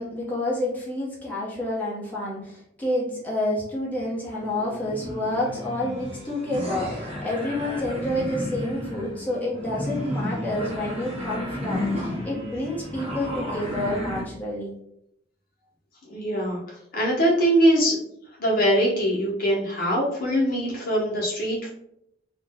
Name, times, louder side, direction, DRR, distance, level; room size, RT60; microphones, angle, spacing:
voice 1, 0.0-14.8, left 1 dB, 10° left, -7 dB, 0.8 m, -29 dB
sound 1, 4.0-14.2, left 1 dB, 35° right, 0.9 m, -33 dB
voice 2, 16.1-18.0 18.4-21.7, equal, 50° left, -4 dB, 0.8 m, -22 dB
2.5 x 2.1 x 3.3 m, 0.74 s
head